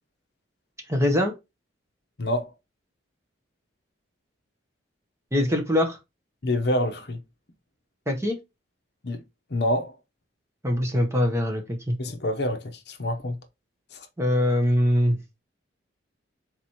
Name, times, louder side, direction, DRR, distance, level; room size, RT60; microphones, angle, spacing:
voice 1, 0.9-1.3 5.3-6.0 8.1-8.4 10.6-12.0 14.2-15.2, left 1 dB, 15° right, 0.8 m, -23 dB
voice 2, 2.2-2.5 6.4-7.2 9.0-9.2 9.5-9.9 12.0-13.4 13.9-14.0, left 1 dB, 55° left, 0.8 m, -27 dB
4.1 x 3.1 x 4.1 m
head